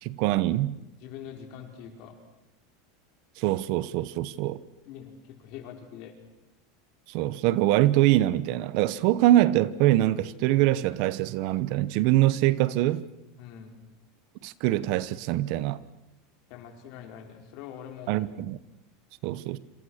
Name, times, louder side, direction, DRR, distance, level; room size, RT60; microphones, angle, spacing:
voice 1, 0.0-0.7 3.4-4.6 7.1-13.0 14.4-15.8 18.1-18.6 19.2-19.6, right 15 dB, 50° right, 17 dB, 0.9 m, -24 dB
voice 2, 1.0-2.1 4.8-6.2 13.4-13.7 16.5-18.3, left 9 dB, 45° left, 4 dB, 5.0 m, -44 dB
27.0 x 27.0 x 6.5 m, 0.95 s
supercardioid pair, 170°, 0 cm